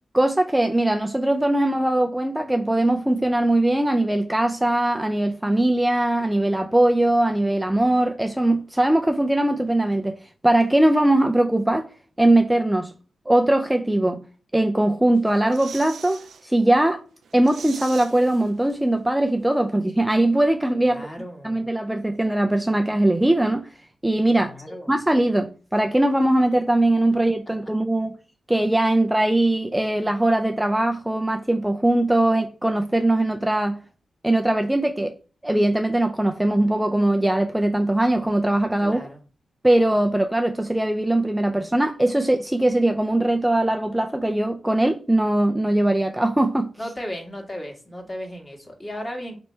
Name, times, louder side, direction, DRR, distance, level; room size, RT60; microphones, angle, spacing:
voice 1, 0.1-10.2 10.4-11.9 12.2-12.9 13.3-14.2 14.5-17.0 17.3-21.1 21.4-23.7 24.0-28.1 28.5-33.8 34.2-35.1 35.4-39.0 39.6-46.7, right 1 dB, 10° right, 0.4 m, -21 dB
sound 1, 15.1-16.4 16.8-16.9 17.2-19.0 19.2-19.3, right 6 dB, 80° right, 0.3 m, -42 dB
voice 2, 20.9-21.6 24.3-24.9 38.8-39.2 46.8-49.4, equal, 30° left, 1.7 m, -35 dB
3.2 x 3.0 x 4.4 m
cardioid pair, 50°, 0 cm